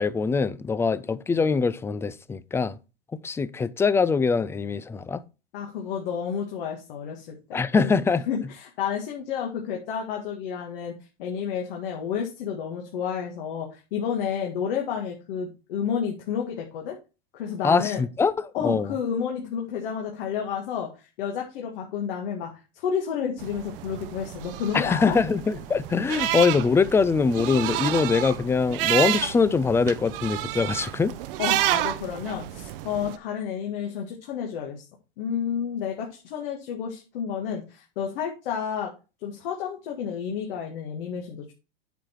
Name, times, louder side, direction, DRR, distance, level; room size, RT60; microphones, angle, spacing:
voice 1, 0.0-2.8 3.1-5.2 7.5-8.2 17.6-19.0 24.7-31.1, left 5 dB, 10° left, 0.4 m, -23 dB
voice 2, 5.5-7.4 7.7-7.9 8.3-10.9 11.2-17.0 17.3-18.0 18.5-25.2 31.4-34.8 35.2-38.9 39.2-41.5, left 7 dB, 65° left, 1.9 m, -30 dB
sound 1, 23.4-33.2, right 14 dB, 65° right, 0.8 m, -30 dB
9.1 x 4.9 x 4.5 m
hypercardioid pair, 120°, 30 cm